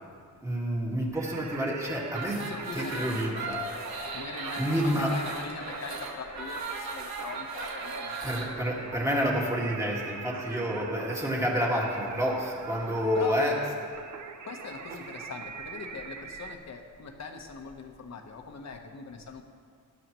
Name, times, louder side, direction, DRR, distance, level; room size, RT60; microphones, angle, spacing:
voice 1, 0.4-2.5 2.7-3.6 4.6-5.1 8.2-13.6, equal, 10° right, -3 dB, 2.0 m, -29 dB
Singing, 1.1-16.5, right 6 dB, 55° right, 0.8 m, -43 dB
sound 1, 2.1-8.5, right 3 dB, 90° right, 1.7 m, -38 dB
voice 2, 2.4-3.4 4.1-8.5 10.5-10.7 13.1-13.4 14.4-19.4, left 4 dB, 50° left, 3 dB, 1.2 m, -41 dB
20.0 x 11.5 x 3.1 m, 2.1 s
wide cardioid pair, 165°, 36 cm